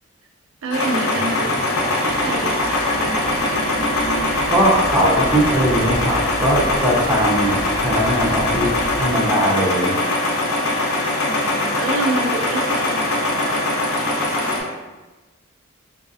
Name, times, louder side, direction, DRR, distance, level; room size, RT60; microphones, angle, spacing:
voice 1, 0.6-1.5 2.0-2.6 3.0-3.7 11.2-13.8, right 3 dB, 65° right, 2 dB, 0.4 m, -28 dB
sound 1, 0.7-14.6, left 1 dB, 90° left, 0.7 m, -22 dB
sound 2, 1.1-9.0, left 1 dB, 50° left, 0.4 m, -33 dB
voice 2, 4.5-8.7 9.0-9.9, equal, 5° right, -5 dB, 0.5 m, -19 dB
3.8 x 2.6 x 2.5 m, 1.2 s
head